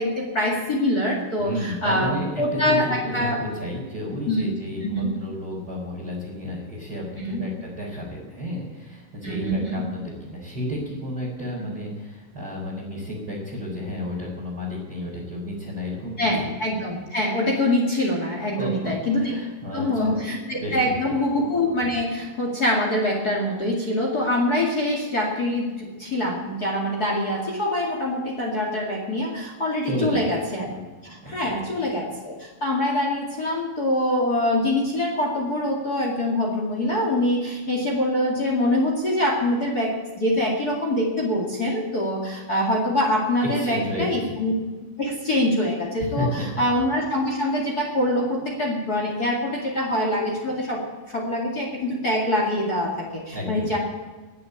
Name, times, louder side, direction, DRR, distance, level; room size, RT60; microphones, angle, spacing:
voice 1, 0.0-3.4 4.3-4.5 4.8-5.1 7.2-7.4 9.2-9.8 11.6-11.7 16.2-19.3 19.7-30.7 31.0-44.5 45.0-50.8 51.1-53.8, left 1 dB, 40° left, 0 dB, 1.3 m, -24 dB
voice 2, 1.3-16.5 18.6-18.7 19.2-20.2 20.5-20.8 29.8-30.2 30.7-30.8 31.1-31.6 43.5-44.4 46.0-46.4 53.3-53.8, left 1 dB, 20° right, -6 dB, 3.7 m, -32 dB
20.0 x 6.8 x 8.7 m, 1.3 s
omnidirectional pair, 5.5 m